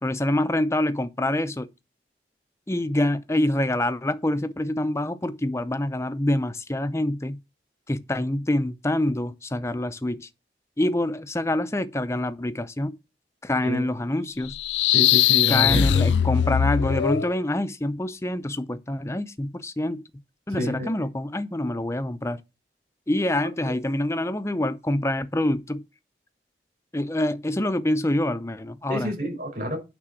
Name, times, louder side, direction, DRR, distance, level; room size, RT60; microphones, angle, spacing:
voice 1, 0.0-1.7 2.7-7.4 7.9-10.3 10.8-13.0 13.4-14.6 15.5-20.0 20.5-22.4 23.1-25.8 26.9-29.1, left 1 dB, 15° left, 0.6 m, -26 dB
sound 1, 14.5-17.3, left 10 dB, 85° left, 0.4 m, -20 dB
voice 2, 14.9-16.0 20.6-20.9 28.9-29.8, equal, 50° right, 4.7 m, -28 dB
9.6 x 3.7 x 6.3 m
head